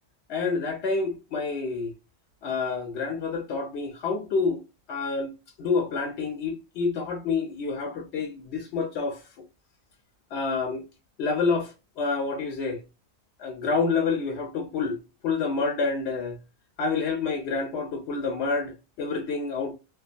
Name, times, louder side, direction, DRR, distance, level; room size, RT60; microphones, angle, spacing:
voice 1, 0.3-1.9 2.4-4.6 4.9-9.2 10.3-10.9 11.2-12.8 13.4-16.4 16.8-19.7, left 4 dB, 90° left, 0.8 m, -28 dB
2.3 x 2.2 x 2.4 m
omnidirectional pair, 1.1 m